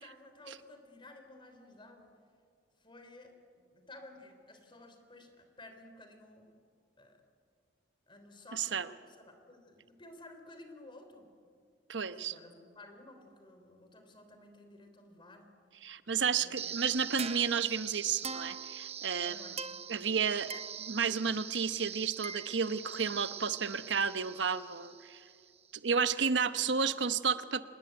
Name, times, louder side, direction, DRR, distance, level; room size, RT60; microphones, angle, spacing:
voice 1, 0.0-2.1 2.8-6.5 7.0-7.2 8.1-11.3 12.1-15.5 16.3-16.6 19.2-19.6, left 2 dB, 25° left, 6 dB, 3.5 m, -54 dB
voice 2, 8.5-8.9 11.9-12.3 15.8-19.5 19.9-25.2 25.8-27.6, right 6 dB, 70° right, 12 dB, 0.9 m, -32 dB
sound 1, 16.6-25.6, right 7 dB, 35° right, 0.8 m, -42 dB
26.5 x 20.0 x 9.0 m, 2.1 s
head